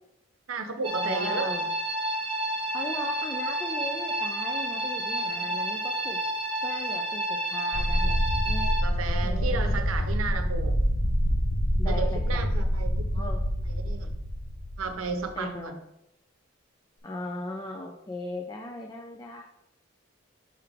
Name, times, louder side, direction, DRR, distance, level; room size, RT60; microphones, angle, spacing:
voice 1, 0.5-1.5 5.3-5.6 8.8-10.8 11.9-13.3 13.8-14.1 14.8-15.7, right 4 dB, 90° right, 8 dB, 0.7 m, -33 dB
sound 1, 0.8-8.8, right 1 dB, 25° right, 0.6 m, -30 dB
voice 2, 1.0-1.7 2.7-6.2 6.6-8.7 9.2-9.8 11.8-12.5 13.1-13.4 15.3-15.8 17.0-19.4, left 1 dB, 20° left, 2 dB, 0.4 m, -38 dB
sound 2, 7.7-15.3, equal, 70° left, 0.9 m, -26 dB
5.8 x 5.0 x 3.5 m, 0.86 s
head